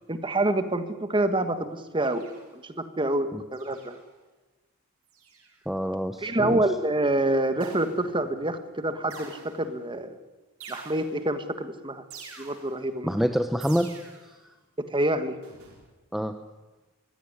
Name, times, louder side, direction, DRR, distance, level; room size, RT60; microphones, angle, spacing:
voice 1, 0.1-2.3 2.5-4.0 6.2-10.2 10.7-12.0 12.4-13.1 14.9-15.3, right 1 dB, 25° right, 10 dB, 1.7 m, -27 dB
sound 1, 2.0-2.7 3.5-4.2 5.1-5.6 7.6-8.3 9.1-9.8 10.6-11.4 12.1-12.9 13.6-14.4 15.4-15.9, right 4 dB, 75° right, 5.9 m, -46 dB
voice 2, 5.7-6.6 13.0-13.9 16.1-16.4, equal, ahead, 8 dB, 0.9 m, -26 dB
23.0 x 17.0 x 9.7 m, 1.2 s
head